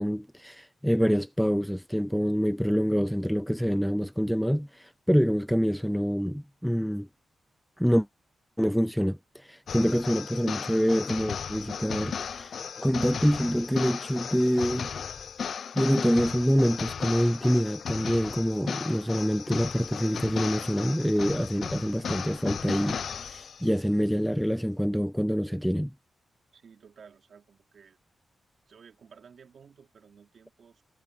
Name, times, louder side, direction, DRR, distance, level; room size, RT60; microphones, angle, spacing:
voice 1, 0.0-7.1 7.8-8.1 8.6-14.9 15.7-25.9, equal, ahead, 0.5 m, -26 dB
sound 1, 9.7-23.7, left 7 dB, 60° left, 0.5 m, -36 dB
voice 2, 26.5-28.0 28.7-30.8, right 6 dB, 55° right, 3.6 m, -54 dB
wide cardioid pair, 160°, 0 cm